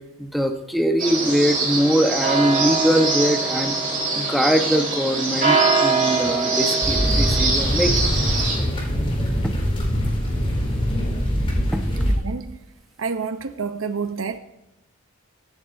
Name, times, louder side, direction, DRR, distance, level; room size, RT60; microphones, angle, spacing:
voice 1, 0.2-3.8 4.1-8.1 9.4-9.5, equal, ahead, 1.1 m, -22 dB
sound 1, 1.0-8.5, right 3 dB, 40° right, 4.6 m, -22 dB
sound 2, 6.8-12.1, equal, 30° left, 4.4 m, -23 dB
voice 2, 12.2-12.6 13.0-14.4, right 5 dB, 85° right, 0.8 m, -28 dB
24.0 x 11.0 x 2.7 m
head